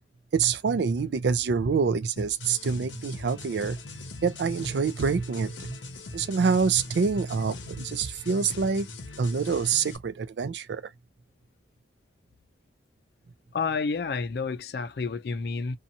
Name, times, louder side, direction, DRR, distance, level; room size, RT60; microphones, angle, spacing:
voice 1, 0.3-3.8 4.2-5.7 6.1-8.9 9.2-10.8, right 5 dB, 70° right, 0.4 m, -26 dB
sound 1, 2.2-10.0, left 3 dB, 90° left, 0.7 m, -41 dB
voice 2, 13.5-15.8, left 4 dB, 60° left, 0.4 m, -30 dB
2.7 x 2.3 x 2.7 m
head